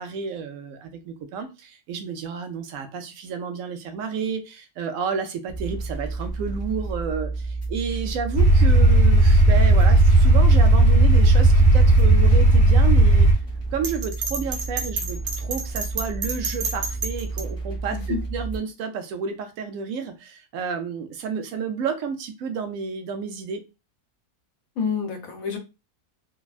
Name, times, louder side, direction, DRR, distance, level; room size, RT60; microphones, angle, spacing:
voice 1, 0.0-13.3 13.7-23.6, right 6 dB, 70° right, 6 dB, 1.0 m, -31 dB
sound 1, 5.5-18.6, right 3 dB, 15° left, 0.7 m, -31 dB
sound 2, 8.3-13.3, right 2 dB, 50° left, 0.9 m, -14 dB
Bell, 13.8-17.4, right 4 dB, 85° right, 1.3 m, -29 dB
voice 2, 24.8-25.6, left 5 dB, 70° left, 2 dB, 1.2 m, -28 dB
3.4 x 2.1 x 2.3 m, 0.27 s
omnidirectional pair, 1.6 m